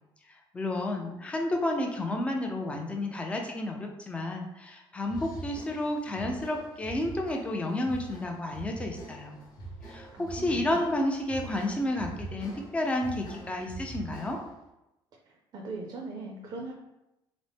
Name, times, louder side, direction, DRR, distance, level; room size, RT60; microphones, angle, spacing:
voice 1, 0.5-9.4 9.9-14.4, left 1 dB, 15° left, 2 dB, 0.4 m, -31 dB
sound 1, 5.0-14.6, right 3 dB, 45° left, 0.9 m, -44 dB
voice 2, 10.1-10.8 15.3-16.7, right 3 dB, 45° right, 1 dB, 0.5 m, -40 dB
3.9 x 2.0 x 3.3 m, 0.91 s
cardioid pair, 160°, 9 cm